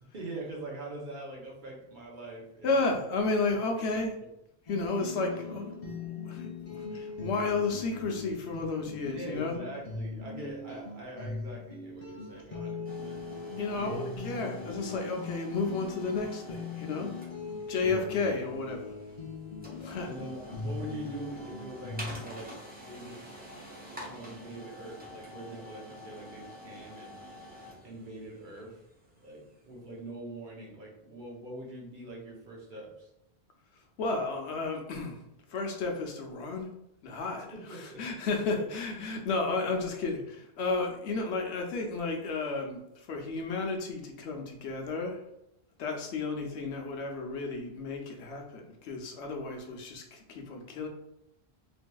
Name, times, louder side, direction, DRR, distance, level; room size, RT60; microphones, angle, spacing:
voice 1, 0.0-2.9 3.7-3.8 9.1-13.2 13.7-14.0 17.8-18.1 20.1-23.2 24.0-27.1 27.8-28.8 29.2-33.1 37.4-38.0 38.4-38.5, right 1 dB, 50° right, -2 dB, 0.8 m, -43 dB
voice 2, 2.6-4.2 4.7-9.5 13.6-17.1 17.7-18.9 19.8-20.1 34.0-35.2 35.5-36.7 37.0-45.2 45.8-50.9, left 3 dB, 85° left, 2 dB, 0.9 m, -32 dB
sound 1, 4.7-22.2, left 3 dB, 50° left, 0.5 m, -40 dB
sound 2, 12.8-29.7, equal, 15° right, 0.4 m, -48 dB
3.3 x 2.7 x 2.2 m, 0.83 s
omnidirectional pair, 1.1 m